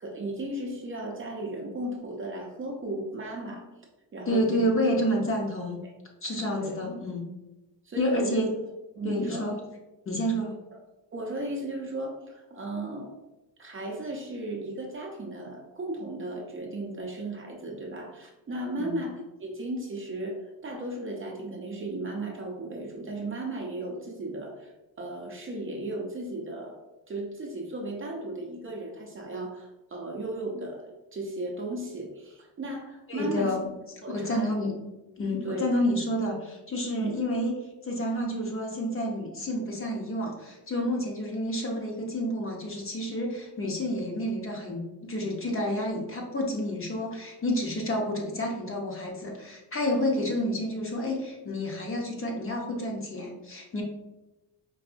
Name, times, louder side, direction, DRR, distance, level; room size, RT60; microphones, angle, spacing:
voice 1, 0.0-3.6 4.1-4.7 6.6-6.8 7.8-8.4 9.0-9.5 11.1-13.1 13.6-20.4 20.6-24.7 25.0-26.8 27.1-33.5 34.0-34.5 35.4-35.7 37.0-37.1, right 1 dB, 30° right, 0 dB, 0.6 m, -35 dB
voice 2, 4.3-5.8 6.2-7.2 7.9-8.5 9.0-9.6 10.1-10.5 18.8-19.0 33.1-33.6 34.1-34.7 35.2-37.6 37.8-53.8, equal, 30° left, 0 dB, 0.7 m, -29 dB
4.7 x 2.6 x 2.5 m, 1.0 s
cardioid pair, 125°, 42 cm